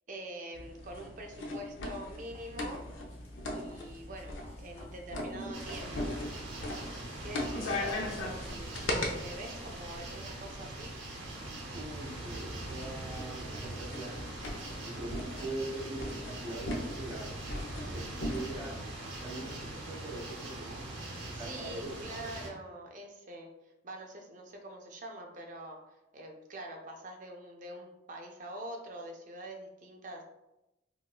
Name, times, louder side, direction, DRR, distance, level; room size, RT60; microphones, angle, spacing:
voice 1, 0.1-2.8 3.5-6.2 7.2-8.1 8.4-11.0 17.7-18.0 21.3-23.5 23.8-30.2, right 1 dB, 40° right, 1 dB, 0.5 m, -45 dB
sound 1, 0.5-9.1 10.4-18.6, left 1 dB, 85° left, 0.5 m, -40 dB
sound 2, 2.2-17.2, equal, 30° left, 0.7 m, -57 dB
sound 3, 5.5-22.5, right 2 dB, 90° right, 0.7 m, -42 dB
voice 2, 11.7-14.3 14.8-17.3 17.9-18.8 19.2-20.8 21.2-21.9, right 2 dB, 15° right, -8 dB, 1.4 m, -42 dB
3.9 x 2.3 x 2.3 m, 0.94 s
head